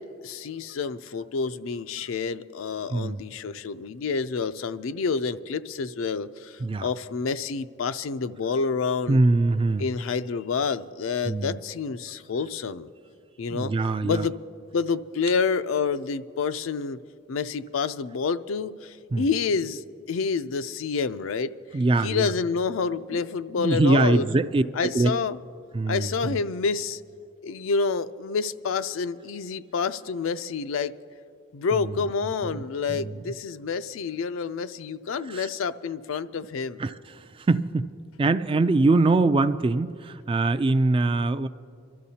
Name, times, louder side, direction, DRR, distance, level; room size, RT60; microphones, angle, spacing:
voice 1, 0.0-9.2 9.8-12.9 13.4-13.7 14.0-14.4 14.7-17.0 17.3-19.8 20.1-21.5 22.0-24.3 24.8-25.4 25.9-27.0 27.4-30.9 31.5-36.8, left 5 dB, 80° left, 12 dB, 0.4 m, -28 dB
voice 2, 2.9-3.2 6.6-6.9 9.1-9.9 11.2-11.6 13.5-14.3 19.1-19.3 21.7-22.3 23.1-23.3 23.6-25.1 25.7-26.4 31.7-32.6 32.9-33.2 35.3-35.5 36.8-37.9 38.2-41.5, right 3 dB, 25° right, 12 dB, 0.3 m, -23 dB
24.5 x 13.0 x 2.8 m, 2.3 s
head